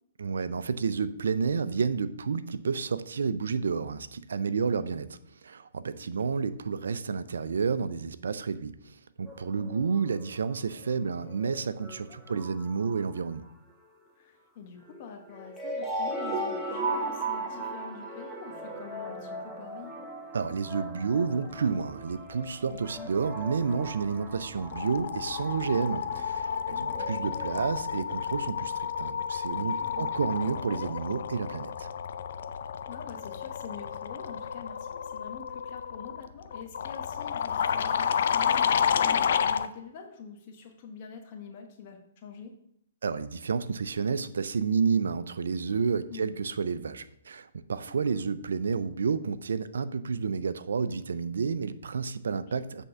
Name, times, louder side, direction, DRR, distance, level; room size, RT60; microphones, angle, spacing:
voice 1, 0.2-5.1 5.4-13.5 20.3-31.9 43.0-52.8, right 5 dB, 80° right, 14 dB, 0.5 m, -30 dB
voice 2, 4.4-4.9 6.0-6.1 9.5-9.8 12.3-12.4 14.2-19.9 22.7-23.1 26.7-27.1 29.7-30.1 32.9-42.5 46.1-46.3 47.9-48.0 52.3-52.7, left 6 dB, 45° left, 3 dB, 1.1 m, -46 dB
sound 1, 9.3-10.5 10.7-10.9 11.3-13.3 14.8-27.7, right 2 dB, 5° right, 1.2 m, -38 dB
sound 2, 23.9-24.2 24.4-39.7, left 7 dB, 65° left, 0.4 m, -31 dB
7.6 x 3.7 x 5.7 m, 0.73 s
hypercardioid pair, 135°, 0 cm